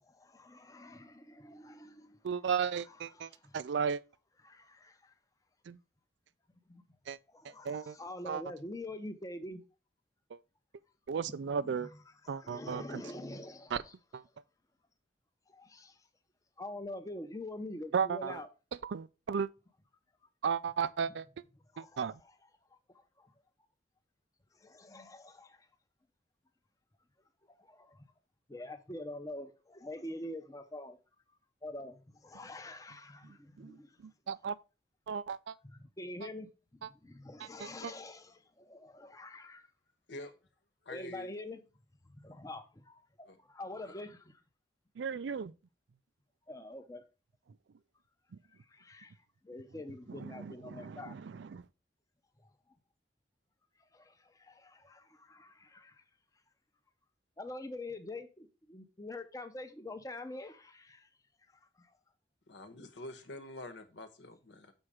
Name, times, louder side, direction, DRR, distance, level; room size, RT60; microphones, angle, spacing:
voice 1, 0.0-2.2 2.7-3.6 4.4-5.1 6.7-6.8 7.3-9.6 11.3-13.9 15.5-16.0 16.6-18.5 21.7-22.3 23.2-23.3 24.5-25.7 27.6-28.1 28.5-31.0 31.6-34.0 35.6-39.7 40.9-41.6 42.2-44.3 46.5-47.0 48.5-49.1 49.4-51.2 53.9-56.0 57.4-61.1 61.8-62.0, left 1 dB, 20° left, 0.7 m, -46 dB
voice 2, 2.2-4.0 5.7-5.8 7.1-7.2 7.6-8.0 8.3-8.4 10.3-10.4 11.1-11.9 12.3-13.0 13.7-13.8 14.1-14.2 17.9-18.4 18.8-19.5 20.4-21.3 21.8-22.2 33.6-34.6 35.1-35.5 37.6-37.9 45.0-45.5 50.1-51.6, right 6 dB, 80° right, 0.4 m, -35 dB
voice 3, 40.8-41.3 43.3-43.4 43.9-44.0 62.5-64.7, left 2 dB, 80° left, 1.1 m, -46 dB
6.3 x 4.3 x 4.9 m
head